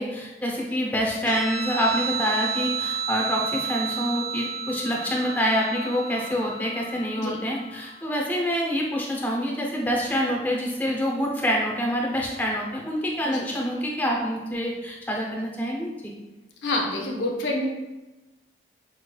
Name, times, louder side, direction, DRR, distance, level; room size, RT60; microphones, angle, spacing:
voice 1, 0.0-16.1, equal, 10° left, -2 dB, 0.6 m, -26 dB
Guitar, 1.2-8.2, right 5 dB, 25° right, 0.8 m, -32 dB
voice 2, 16.6-17.7, left 1 dB, 85° left, -1 dB, 0.6 m, -27 dB
5.0 x 3.2 x 2.2 m, 1.1 s
head